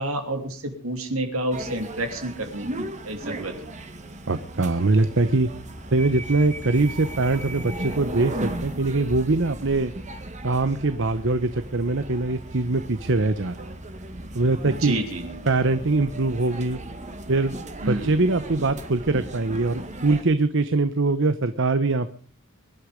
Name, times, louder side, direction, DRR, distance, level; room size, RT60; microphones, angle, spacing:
voice 1, 0.0-3.5 14.7-15.4 17.8-18.2, right 1 dB, 80° right, 4 dB, 3.2 m, -29 dB
sound 1, 1.5-20.2, right 1 dB, 35° right, 2.1 m, -36 dB
voice 2, 4.3-5.5 5.9-9.9 10.4-13.7 14.3-14.9 15.5-16.8 17.3-17.5 17.9-22.1, right 3 dB, 60° right, 12 dB, 1.0 m, -22 dB
23.5 x 11.5 x 5.2 m, 0.42 s
head